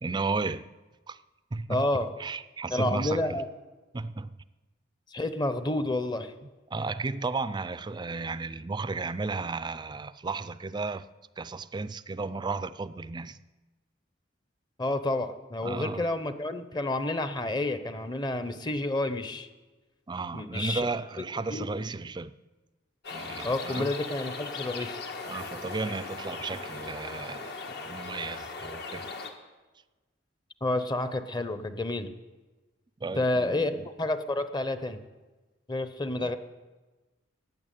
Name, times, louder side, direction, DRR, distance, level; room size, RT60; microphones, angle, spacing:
voice 1, 0.0-0.7 1.1-1.2 1.5-1.8 2.2-3.4 3.9-4.4 6.7-11.1 11.4-13.4 15.6-16.1 20.1-22.3 23.1-23.9 25.2-29.1 33.0-33.8 36.1-36.4, right 3 dB, 25° right, 0.4 m, -34 dB
voice 2, 1.7-2.1 2.7-3.5 5.1-6.3 14.8-19.5 20.3-20.9 21.5-21.7 23.4-25.0 30.6-32.1 33.2-35.0 35.7-36.4, left 2 dB, 25° left, 0.8 m, -29 dB
sound 1, 23.0-29.3, left 4 dB, 60° left, 1.5 m, -38 dB
15.0 x 8.9 x 9.2 m
head